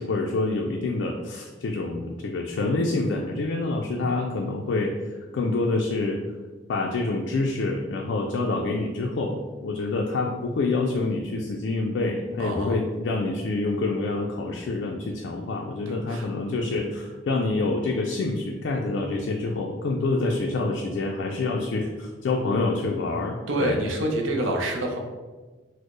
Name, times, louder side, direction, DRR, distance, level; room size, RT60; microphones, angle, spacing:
voice 1, 0.0-6.2 6.7-23.8, left 3 dB, 60° left, 1 dB, 0.3 m, -27 dB
voice 2, 12.4-12.8 15.9-16.3 23.5-25.0, right 1 dB, 90° right, 2 dB, 0.6 m, -27 dB
4.1 x 2.0 x 3.1 m, 1.3 s
head